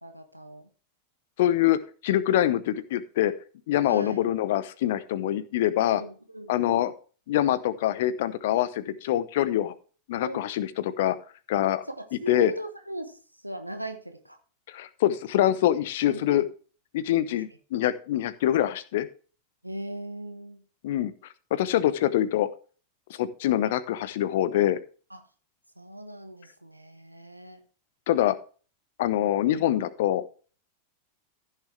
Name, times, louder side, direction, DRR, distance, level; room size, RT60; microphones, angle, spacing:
voice 1, 0.0-0.7 3.9-4.2 5.9-6.9 10.2-10.4 11.9-14.4 16.1-16.5 19.6-20.6 25.1-25.2 25.8-27.6, right 1 dB, 90° right, 7 dB, 1.3 m, -39 dB
voice 2, 1.4-3.3 3.7-6.0 6.5-6.9 7.3-9.7 10.1-11.2 11.5-11.8 12.3-12.5 14.7-16.4 16.9-19.1 20.8-21.1 21.5-22.5 23.1-24.8 28.1-28.4 29.0-30.2, left 12 dB, 55° left, 16 dB, 0.8 m, -24 dB
15.0 x 6.7 x 3.3 m, 0.38 s
figure-of-eight pair, 90°, 0 cm